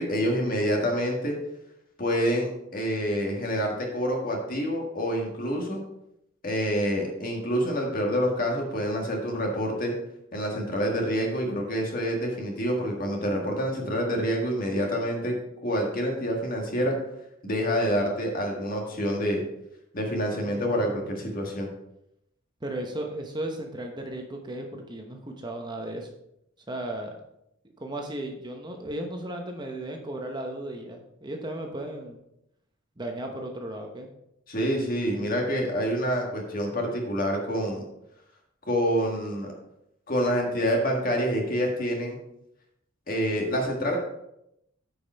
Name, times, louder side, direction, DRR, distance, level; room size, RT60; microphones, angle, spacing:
voice 1, 0.0-1.4 2.0-5.8 6.4-9.9 10.3-15.3 15.6-17.0 17.4-19.4 19.9-21.7 34.5-37.8 38.7-39.5 40.1-42.2 43.1-44.0, equal, 45° left, 1 dB, 1.9 m, -27 dB
voice 2, 20.3-21.3 22.6-26.1 26.7-27.2 27.8-32.2 33.0-34.1, right 1 dB, 20° right, 2 dB, 0.9 m, -35 dB
9.3 x 5.3 x 4.5 m, 0.80 s
head